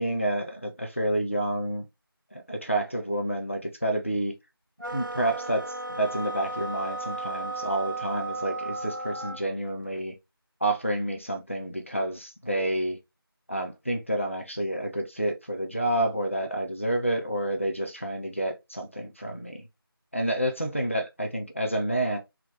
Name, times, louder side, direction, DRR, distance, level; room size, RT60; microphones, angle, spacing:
voice 1, 0.0-1.8 2.3-4.3 4.9-10.1 10.6-13.0 13.5-19.7 20.1-22.2, right 1 dB, 30° left, 0.7 m, -29 dB
sound 1, 4.8-9.4, right 2 dB, 55° right, 0.9 m, -34 dB
3.9 x 3.0 x 3.2 m
figure-of-eight pair, 175°, 13 cm